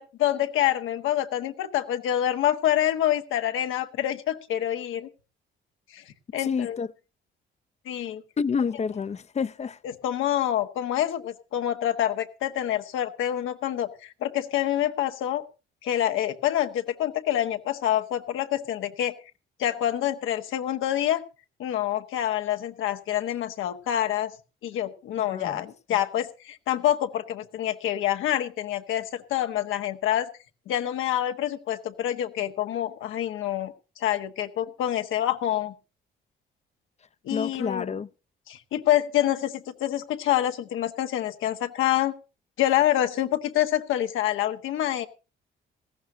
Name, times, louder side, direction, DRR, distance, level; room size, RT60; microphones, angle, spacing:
voice 1, 0.0-5.1 5.9-6.0 6.3-6.8 7.8-8.2 10.0-15.4 15.8-19.1 19.6-21.2 21.6-24.3 24.6-30.3 30.7-35.7 37.2-37.9 38.5-42.1 42.6-45.1, left 12 dB, 90° left, 1.4 m, -26 dB
voice 2, 6.4-6.9 8.4-9.8 25.2-26.0 37.3-38.1, left 6 dB, 35° left, 0.6 m, -29 dB
18.5 x 15.5 x 2.7 m
cardioid pair, 90°, 20 cm